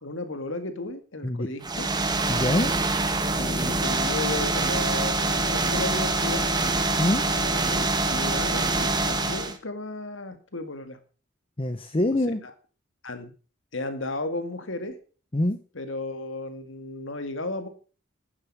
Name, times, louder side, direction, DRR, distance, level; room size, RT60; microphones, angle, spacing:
voice 1, 0.0-1.9 3.3-6.5 7.4-11.0 12.4-12.5 13.0-13.3 13.7-15.0 15.8-17.7, left 2 dB, 75° left, 9 dB, 2.0 m, -34 dB
sound 1, 1.6-9.6, right 2 dB, 20° right, 1.5 m, -25 dB
voice 2, 2.3-2.7 7.0-7.2 11.6-12.4 15.3-15.6, left 1 dB, 30° left, 9 dB, 1.0 m, -24 dB
11.5 x 9.9 x 6.2 m, 0.37 s
head